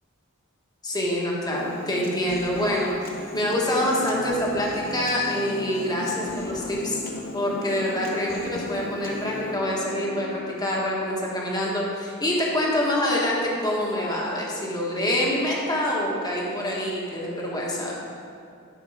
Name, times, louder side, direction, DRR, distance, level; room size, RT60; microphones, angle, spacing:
voice 1, 0.8-2.9 3.3-7.0 7.3-17.9, left 1 dB, 20° left, -3 dB, 1.5 m, -26 dB
Human voice, 1.6-9.6, left 1 dB, 45° left, 1.0 m, -38 dB
sound 1, 3.4-10.5, left 2 dB, 70° left, 0.8 m, -37 dB
10.5 x 5.5 x 5.0 m, 2.5 s
head